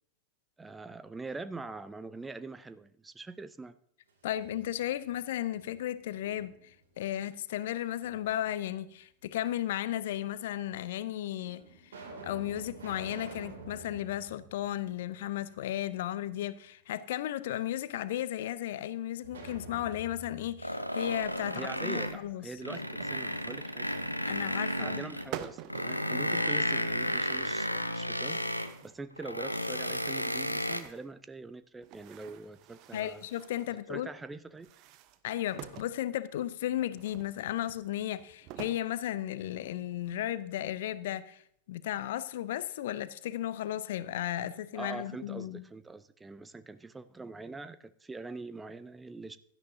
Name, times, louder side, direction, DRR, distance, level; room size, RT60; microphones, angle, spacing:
voice 1, 0.6-3.7 21.5-23.9 24.7-28.4 28.8-33.2 33.9-34.7 44.7-49.4, right 3 dB, 10° right, 0.5 m, -43 dB
sound 1, 4.1-5.1 5.5-6.8 8.0-8.8 9.7-9.8 10.7-10.8 11.4-15.5 15.8-15.9 19.2-22.0, right 3 dB, 65° right, 2.5 m, -49 dB
voice 2, 4.2-11.9 12.2-22.5 24.3-25.1 32.9-34.1 35.2-41.4 41.7-45.6, left 12 dB, 55° left, 0.6 m, -35 dB
sound 2, 20.6-22.3 22.6-25.3 25.7-28.8 29.2-30.8, equal, 90° left, 0.8 m, -33 dB
sound 3, 22.7-23.6 24.6-25.0 25.3-26.0 27.0-27.8 28.1-29.0 29.5-31.1 31.8-33.8 34.5-36.0 37.0-38.9 39.4-39.5 40.0-40.8, right 11 dB, 40° right, 0.8 m, -48 dB
16.5 x 12.0 x 2.7 m
figure-of-eight pair, 90°, 0 cm